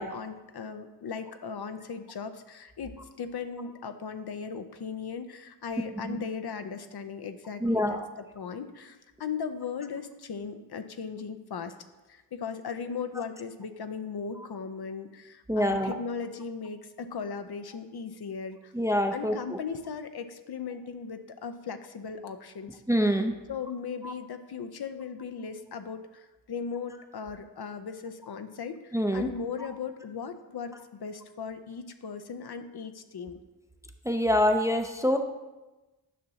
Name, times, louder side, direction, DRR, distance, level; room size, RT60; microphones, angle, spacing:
voice 1, 0.0-8.0 8.4-11.7 12.1-18.7 19.1-22.8 23.5-33.4, left 6 dB, 60° left, 8 dB, 0.6 m, -38 dB
voice 2, 7.6-8.0 15.5-15.9 18.7-19.6 22.9-23.3 24.0-24.1 28.9-29.3 34.0-35.2, equal, 5° right, 5 dB, 0.5 m, -25 dB
9.4 x 5.9 x 2.8 m, 1.1 s
cardioid pair, 60°, 45 cm